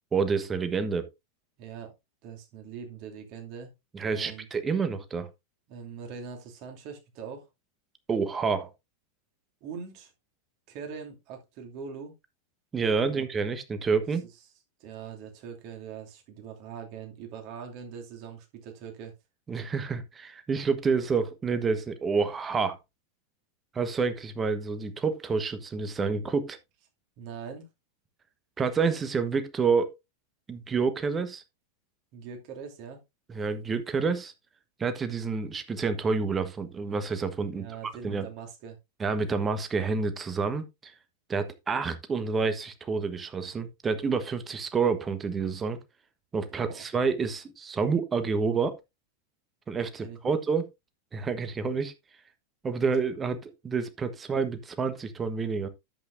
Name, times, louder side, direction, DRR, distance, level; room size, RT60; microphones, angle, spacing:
voice 1, 0.1-1.1 3.9-5.3 8.1-8.7 12.7-14.2 19.5-22.8 23.7-26.6 28.6-30.0 30.5-31.4 33.3-34.3 34.8-37.7 38.0-38.2 39.0-40.9 41.3-45.8 46.3-48.8 49.7-50.7 51.1-51.9 52.6-55.7, right 5 dB, 20° right, 1.3 m, -28 dB
voice 2, 1.6-1.9 2.2-3.7 4.1-4.5 5.7-7.5 9.6-10.1 10.7-12.1 13.1-13.2 14.8-19.1 27.2-27.6 32.1-33.0 37.5-38.8 46.6-46.8 50.0-50.4, right 6 dB, 45° right, 2.6 m, -42 dB
10.5 x 8.1 x 2.6 m
figure-of-eight pair, 90°, 0 cm